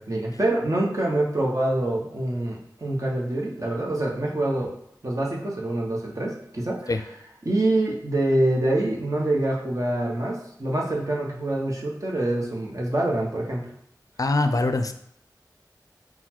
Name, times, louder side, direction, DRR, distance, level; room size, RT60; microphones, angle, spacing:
voice 1, 0.0-4.7 5.0-6.9 7.4-13.7, right 1 dB, 45° right, -2 dB, 1.0 m, -25 dB
voice 2, 14.2-14.9, left 2 dB, 55° left, 8 dB, 0.4 m, -23 dB
4.0 x 2.3 x 4.3 m, 0.72 s
wide cardioid pair, 50°, 7 cm